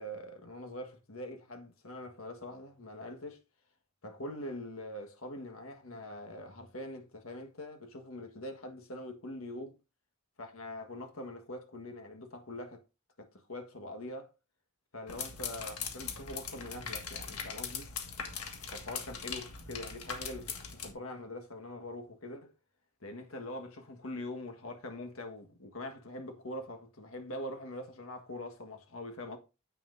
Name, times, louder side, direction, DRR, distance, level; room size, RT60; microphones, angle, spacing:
voice 1, 0.0-3.4 4.0-9.8 10.4-12.8 13.2-14.3 14.9-17.9 18.7-22.5 23.0-29.4, left 1 dB, 70° left, 1.5 m, -43 dB
sound 1, 15.1-20.9, left 6 dB, 85° left, 1.6 m, -40 dB
9.6 x 7.7 x 2.7 m
head